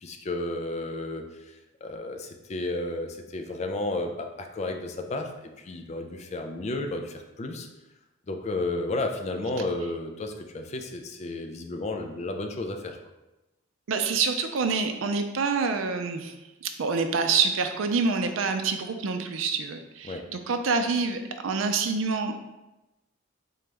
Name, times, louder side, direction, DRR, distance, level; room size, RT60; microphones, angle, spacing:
voice 1, 0.0-7.7 8.3-13.0 20.0-20.3, left 2 dB, 35° left, 4 dB, 0.4 m, -32 dB
voice 2, 13.9-16.4 16.6-22.3, right 4 dB, 75° right, 6 dB, 0.4 m, -27 dB
3.8 x 3.2 x 3.4 m, 1.0 s
head